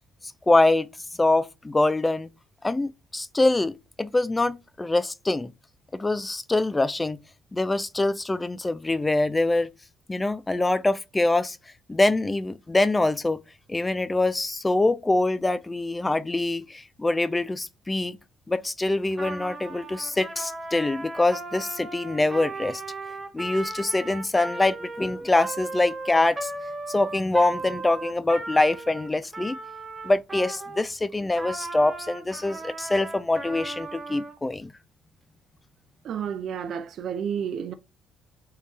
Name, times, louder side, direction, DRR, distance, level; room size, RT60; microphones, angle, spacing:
voice 1, 0.5-0.9 1.2-2.3 2.6-5.5 5.9-7.2 7.5-9.7 10.1-11.6 11.9-13.4 13.7-18.2 18.5-22.8 23.3-26.5 26.9-29.6 30.0-34.7, left 2 dB, 15° left, 0.3 m, -24 dB
Trumpet, 19.1-30.9 31.3-34.3, right 2 dB, 15° right, 1.0 m, -36 dB
voice 2, 36.0-37.7, right 8 dB, 60° right, 0.5 m, -31 dB
3.7 x 2.4 x 4.1 m
cardioid pair, 115°, 0 cm